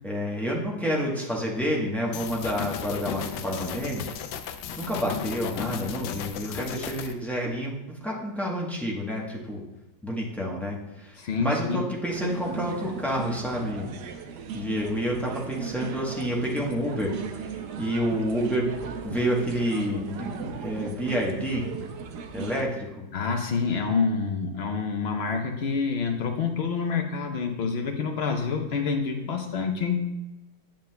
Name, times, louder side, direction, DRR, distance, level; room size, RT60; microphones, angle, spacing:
voice 1, 0.0-4.0 4.8-9.6 10.0-13.9 14.5-18.7 19.0-21.7 22.3-22.9, equal, ahead, -3 dB, 0.5 m, -29 dB
sound 1, 2.1-7.1, left 8 dB, 75° left, 1.2 m, -35 dB
voice 2, 11.2-11.8 23.1-30.0, left 5 dB, 60° left, 4 dB, 0.7 m, -27 dB
sound 2, 12.1-22.6, right 6 dB, 70° right, 1.2 m, -37 dB
8.9 x 7.5 x 2.2 m, 0.99 s
omnidirectional pair, 2.0 m